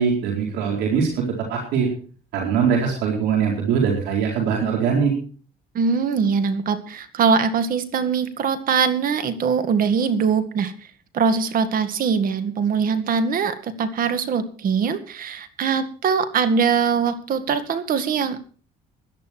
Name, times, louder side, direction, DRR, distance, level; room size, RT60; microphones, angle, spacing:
voice 1, 0.0-1.9 2.3-5.1, right 6 dB, 85° right, 0 dB, 4.6 m, -22 dB
voice 2, 5.7-10.7 11.1-18.4, right 6 dB, 55° right, 11 dB, 2.0 m, -22 dB
17.5 x 11.0 x 4.6 m, 0.41 s
cardioid pair, 110°, 17 cm